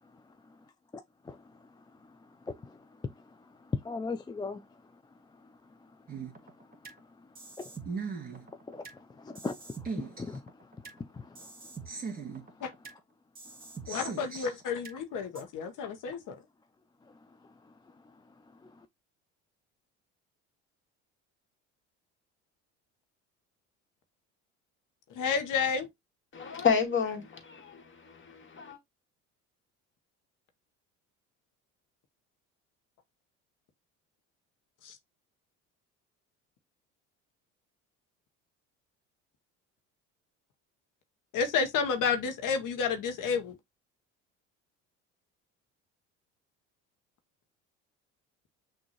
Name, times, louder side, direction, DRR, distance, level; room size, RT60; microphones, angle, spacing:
voice 1, 0.1-0.6 0.9-5.0 5.3-6.0 6.4-12.6 13.6-13.8 17.0-18.9, left 4 dB, 10° left, 0.4 m, -43 dB
sound 1, 6.1-7.0 7.3-9.0 9.3-11.0 11.3-13.0 13.3-15.0 15.3-15.4, right 5 dB, 25° right, 2.0 m, -40 dB
voice 2, 13.9-16.4 25.1-25.9 34.8-35.0 41.3-43.5, left 6 dB, 60° left, 1.1 m, -30 dB
voice 3, 26.3-28.8, left 6 dB, 35° left, 1.8 m, -30 dB
6.1 x 2.7 x 3.0 m
hypercardioid pair, 75°, 36 cm